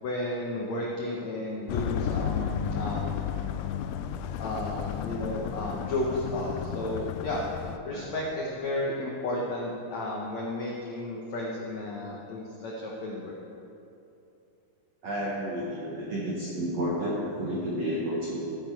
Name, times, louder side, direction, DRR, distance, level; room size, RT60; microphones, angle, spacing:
voice 1, 0.0-3.2 4.4-7.4 7.8-13.4, left 1 dB, 75° left, -3 dB, 1.6 m, -33 dB
sound 1, 1.7-7.8, left 8 dB, 90° left, 2.1 m, -33 dB
voice 2, 15.0-18.4, equal, 65° right, -5 dB, 1.7 m, -31 dB
13.5 x 9.9 x 4.6 m, 2.7 s
omnidirectional pair, 4.8 m